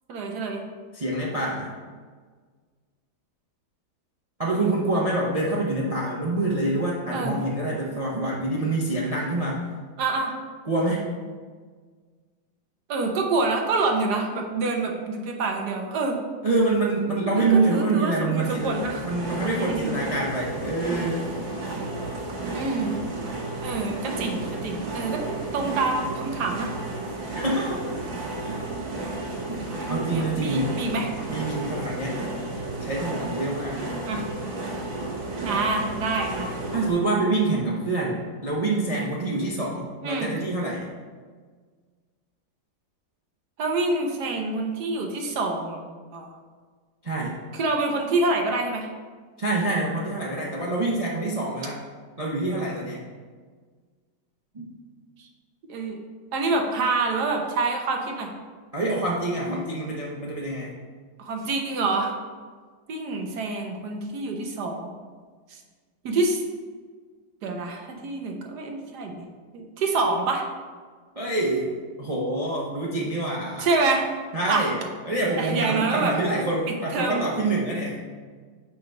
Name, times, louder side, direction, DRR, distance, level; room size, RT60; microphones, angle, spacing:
voice 1, 0.1-0.6 7.1-7.4 10.0-10.3 12.9-16.2 17.3-19.0 19.6-19.9 22.5-23.0 23.6-25.2 25.5-26.7 29.8-31.1 34.1-34.2 35.4-36.6 40.0-40.3 43.6-45.8 46.1-46.3 47.5-48.9 55.2-55.3 55.7-56.0 56.3-58.3 61.2-62.2 62.9-64.9 65.5-65.6 66.0-66.4 67.4-69.3 69.5-70.4 73.6-74.1 74.5-74.7 75.4-76.2 76.7-77.2, right 3 dB, 65° right, 2 dB, 1.3 m, -26 dB
voice 2, 0.9-1.7 4.4-9.6 10.7-11.0 16.4-18.7 19.0-21.2 27.3-28.0 28.4-28.6 29.5-29.6 29.9-30.8 31.3-32.2 32.8-33.8 36.7-40.9 47.0-47.4 49.4-51.8 52.2-53.0 54.5-54.7 58.7-60.7 71.2-71.7 72.0-73.7 74.3-74.8 75.1-78.2, right 2 dB, 50° right, -4 dB, 0.4 m, -26 dB
sound 1, 18.4-36.9, right 2 dB, 85° right, 2.2 m, -32 dB
5.7 x 4.5 x 5.3 m, 1.5 s
omnidirectional pair, 2.0 m